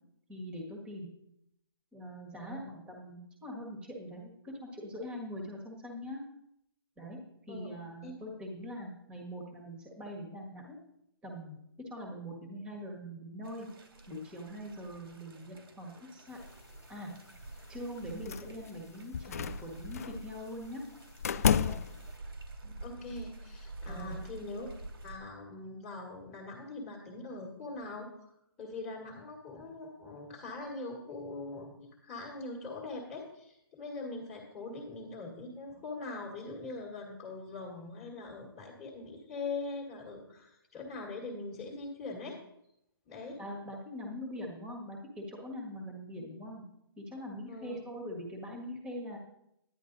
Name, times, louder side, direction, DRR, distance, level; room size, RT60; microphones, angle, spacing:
voice 1, 0.3-1.1 1.9-6.2 7.0-7.2 7.5-10.8 11.2-11.6 11.9-13.7 14.1-16.4 16.9-17.1 17.7-20.8 21.5-21.8 23.9-24.2 43.4-46.6 47.0-49.2, equal, 10° right, 0 dB, 1.6 m, -42 dB
voice 2, 2.3-2.7 7.5-7.7 8.0-8.1 22.6-24.7 25.0-28.3 28.6-42.4 43.1-43.4 47.5-47.8, left 3 dB, 10° left, -5 dB, 1.7 m, -42 dB
sound 1, 13.4-25.2, right 2 dB, 80° right, 2.8 m, -48 dB
sound 2, 18.2-18.7 19.1-20.2 21.2-22.1, left 7 dB, 40° left, 0.4 m, -31 dB
10.5 x 10.0 x 4.0 m, 0.79 s
hypercardioid pair, 165°, 13 cm